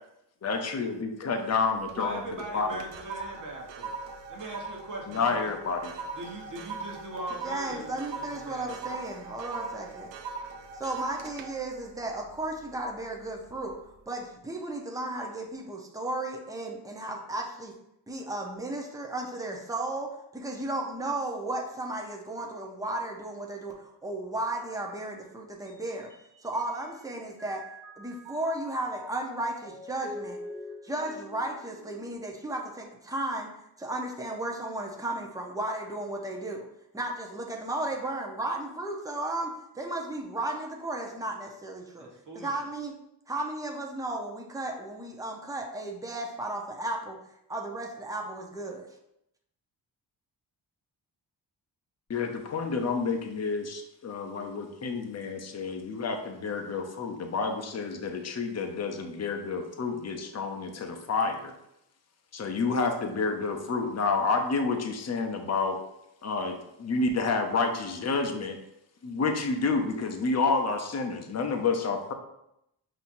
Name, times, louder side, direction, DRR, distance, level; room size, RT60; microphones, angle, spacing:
voice 1, 0.4-2.2 2.5-2.8 5.1-5.9 52.1-61.5 62.3-65.8 66.2-68.6 69.0-72.1, left 4 dB, 35° left, 4 dB, 0.7 m, -29 dB
sound 1, 1.6-2.1 2.4-13.0 13.4-13.7, right 4 dB, 70° right, 0.6 m, -41 dB
voice 2, 1.9-3.9 4.3-5.5 6.1-8.1 8.3-9.1 42.0-42.5, right 1 dB, 40° right, -1 dB, 1.2 m, -40 dB
voice 3, 7.4-10.1 10.8-13.8 14.1-17.7 18.1-26.1 26.4-27.7 28.0-30.4 30.8-33.5 33.8-36.7 36.9-42.1 42.3-42.9 43.3-47.2 47.5-48.9, right 2 dB, 10° right, 1 dB, 0.8 m, -34 dB
Mallet percussion, 25.7-27.0 27.4-32.8, equal, 20° left, 1.4 m, -45 dB
5.5 x 2.9 x 2.6 m, 0.82 s
cardioid pair, 60°, 46 cm